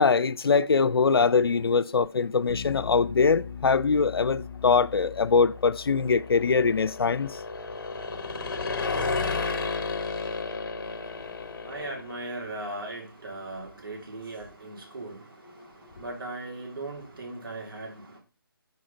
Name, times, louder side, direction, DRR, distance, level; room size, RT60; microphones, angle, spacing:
voice 1, 0.0-7.3, left 5 dB, 85° left, 0.4 m, -22 dB
Bass guitar, 2.5-8.7, left 7 dB, 30° left, 0.7 m, -42 dB
sound 1, 5.4-12.4, left 4 dB, 60° left, 1.0 m, -32 dB
voice 2, 10.7-18.2, right 2 dB, 70° right, 3.1 m, -39 dB
6.3 x 4.5 x 3.9 m
figure-of-eight pair, 160°, 12 cm